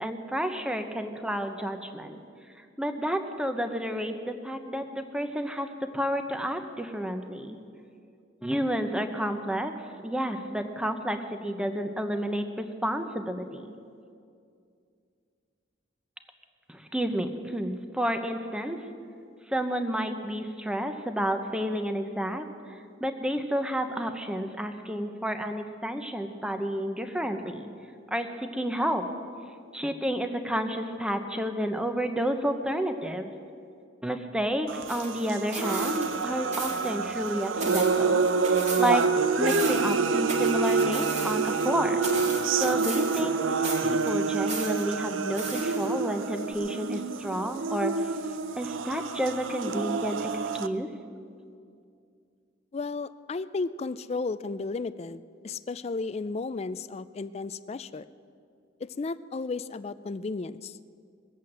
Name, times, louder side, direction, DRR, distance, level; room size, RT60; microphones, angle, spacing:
voice 1, 0.0-2.2 2.8-7.6 8.4-9.7 10.0-13.7 16.7-18.8 19.5-27.7 28.1-29.0 29.7-33.3 34.0-38.2 38.8-39.0 39.4-42.0 42.5-43.3 43.8-47.9 48.6-50.3 50.6-50.9, equal, 5° right, 7 dB, 0.9 m, -30 dB
sound 1, 34.7-50.7, right 4 dB, 80° right, 0.6 m, -27 dB
sound 2, 34.9-36.2 36.5-36.9 37.3-39.1 39.3-41.7 42.0-43.4 43.6-44.8 45.3-46.1 46.5-46.6, right 3 dB, 35° right, 1.9 m, -37 dB
voice 2, 52.7-58.1 58.8-60.8, left 3 dB, 35° left, 15 dB, 0.4 m, -34 dB
21.0 x 8.3 x 7.6 m, 2.4 s
head